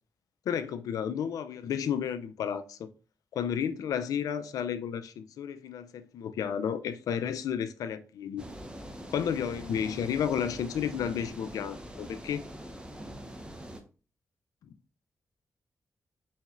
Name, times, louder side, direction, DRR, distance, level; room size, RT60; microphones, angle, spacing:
voice 1, 0.5-2.9 3.3-8.4 9.1-12.4, left 8 dB, 85° left, 0.4 m, -32 dB
sound 1, 8.4-13.8, equal, 15° right, 0.9 m, -43 dB
4.2 x 3.9 x 2.4 m
supercardioid pair, 50°, 6 cm